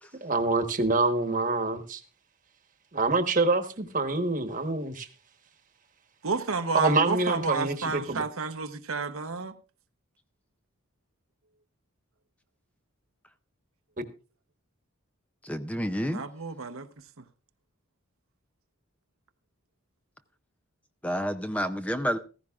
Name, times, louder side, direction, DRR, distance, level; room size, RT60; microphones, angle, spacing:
voice 1, 0.2-2.0 2.9-5.1 6.7-8.2, right 3 dB, 35° right, 1.2 m, -26 dB
voice 2, 6.2-9.6 16.1-16.9, right 4 dB, 70° right, 0.9 m, -31 dB
voice 3, 15.4-16.2 21.0-22.2, equal, 5° left, 0.5 m, -29 dB
15.5 x 15.0 x 2.4 m
head